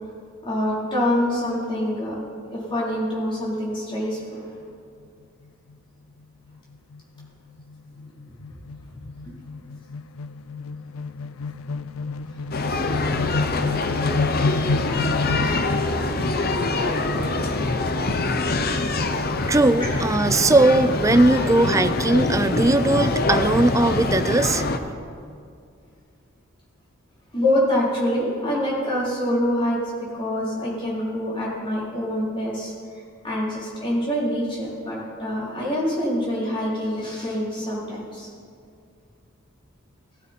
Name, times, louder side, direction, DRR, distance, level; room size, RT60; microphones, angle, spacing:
voice 1, 0.4-2.2 2.5-4.4 8.3-8.4 9.2-9.3 19.8-19.9 27.3-32.7 33.2-38.3, left 1 dB, 25° left, -6 dB, 4.1 m, -25 dB
sound 1, 5.4-5.8 6.1-6.2 6.5-16.2, left 3 dB, 85° left, 0.5 m, -30 dB
sound 2, 12.5-24.8, left 2 dB, 50° left, 0.9 m, -24 dB
voice 2, 19.5-24.7, right 2 dB, 15° right, 12 dB, 0.4 m, -19 dB
16.0 x 15.0 x 4.5 m, 2.3 s
head